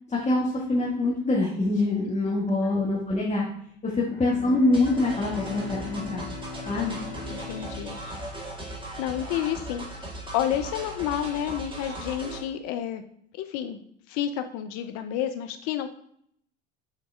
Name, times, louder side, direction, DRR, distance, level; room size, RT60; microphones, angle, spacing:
voice 1, 0.1-3.4 3.8-6.3 6.6-7.0, left 2 dB, 20° left, -5 dB, 1.5 m, -25 dB
Bowed string instrument, 4.1-9.0, left 5 dB, 85° left, 1.8 m, -41 dB
sound 1, 4.7-12.4, right 1 dB, 15° right, 1.8 m, -38 dB
voice 2, 7.3-8.0 9.0-13.0 13.3-13.8 14.1-15.9, left 10 dB, 55° left, 8 dB, 0.7 m, -30 dB
6.6 x 4.1 x 3.5 m, 0.66 s
hypercardioid pair, 85°, 32 cm